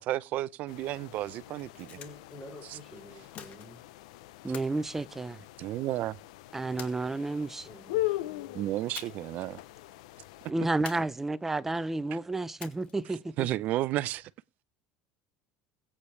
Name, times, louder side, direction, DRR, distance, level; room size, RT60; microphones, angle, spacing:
voice 1, 0.0-2.0 5.6-6.2 8.5-9.6 13.4-14.3, right 15 dB, 50° right, 0.7 m, -32 dB
sound 1, 0.7-10.5, left 17 dB, 85° left, 0.7 m, -40 dB
sound 2, 1.6-2.4 3.3-4.0 4.5-5.8 6.8-7.5 8.9-9.4 9.7-9.8 10.9-11.6 12.6-13.2, left 8 dB, 45° left, 2.2 m, -47 dB
voice 2, 1.9-3.9 7.6-8.6, left 2 dB, 10° left, 6.6 m, -49 dB
voice 3, 4.4-5.4 6.5-7.7 10.5-13.5, right 2 dB, 10° right, 0.7 m, -31 dB
22.0 x 8.6 x 3.3 m
supercardioid pair, 135°, 3 cm